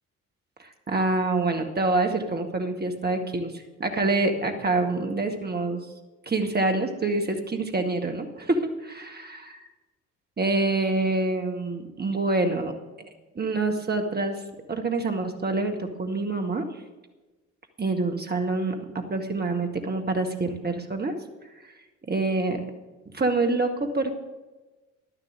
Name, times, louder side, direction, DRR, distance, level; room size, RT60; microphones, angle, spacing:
voice 1, 0.6-5.8 6.2-9.7 10.4-12.7 13.0-14.4 14.7-16.6 17.8-18.8 19.1-21.1 22.1-22.6 23.1-24.2, right 2 dB, 25° right, 5 dB, 1.7 m, -26 dB
11.5 x 7.1 x 7.5 m, 1.2 s
figure-of-eight pair, 45°, 41 cm